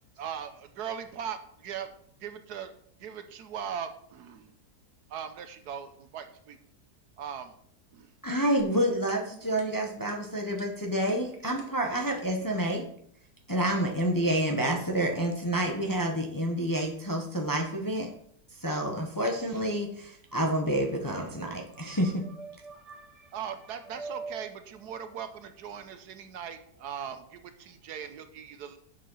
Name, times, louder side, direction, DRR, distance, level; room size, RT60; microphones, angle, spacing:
voice 1, 0.2-1.9 2.2-2.7 3.0-4.5 5.1-6.6 7.2-7.5 7.9-8.1 23.3-28.8, right 8 dB, 75° right, 9 dB, 1.3 m, -39 dB
voice 2, 8.2-12.9 13.5-18.1 18.6-22.3, right 1 dB, 15° left, 1 dB, 0.9 m, -28 dB
sound 1, 8.6-12.4, right 3 dB, 35° right, 1.7 m, -51 dB
voice 3, 21.5-23.4 23.6-24.5 26.8-26.9, right 4 dB, 55° right, 6 dB, 1.0 m, -44 dB
7.5 x 6.4 x 5.5 m, 0.65 s
omnidirectional pair, 1.8 m